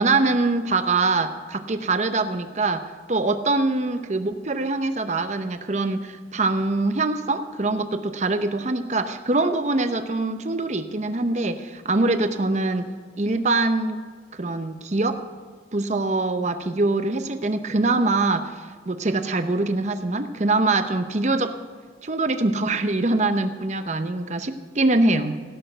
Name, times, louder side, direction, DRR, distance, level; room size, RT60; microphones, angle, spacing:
voice 1, 0.0-12.9 13.2-14.0 14.3-15.2 15.7-18.5 18.9-21.5 22.0-25.4, right 2 dB, 40° right, 9 dB, 0.7 m, -23 dB
16.5 x 6.4 x 7.8 m, 1.6 s
head